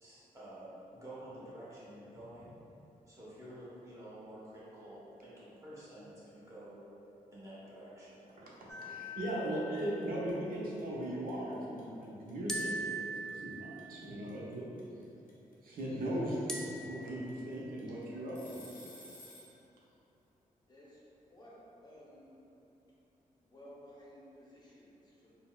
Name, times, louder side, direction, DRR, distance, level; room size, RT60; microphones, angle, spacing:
voice 1, 0.0-2.5 3.1-6.8 7.3-8.2, right 1 dB, 20° right, -9 dB, 1.0 m, -50 dB
sound 1, 8.3-8.5 8.8-19.6, left 1 dB, 65° left, 0.7 m, -55 dB
voice 2, 8.4-14.7 15.6-16.4 16.8-18.7, right 1 dB, 75° right, -5 dB, 0.6 m, -38 dB
sound 2, 8.7-10.2 12.5-14.2 16.5-17.6, right 1 dB, 5° left, 0.3 m, -41 dB
voice 3, 20.7-22.4 23.4-25.3, equal, 30° left, -7 dB, 0.7 m, -56 dB
4.0 x 2.0 x 2.2 m, 2.9 s
cardioid pair, 85°, 15 cm